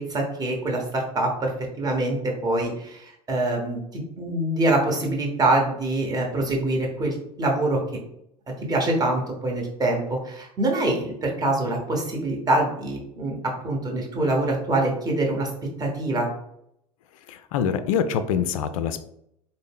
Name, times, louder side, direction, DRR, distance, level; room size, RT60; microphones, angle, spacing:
voice 1, 0.0-1.5 1.8-7.8 8.7-13.4 13.6-15.5 15.8-16.3, right 2 dB, 20° right, 0 dB, 1.1 m, -25 dB
voice 2, 17.3-19.0, left 7 dB, 60° left, 11 dB, 0.4 m, -25 dB
4.1 x 2.1 x 3.5 m, 0.74 s
figure-of-eight pair, 75°, 20 cm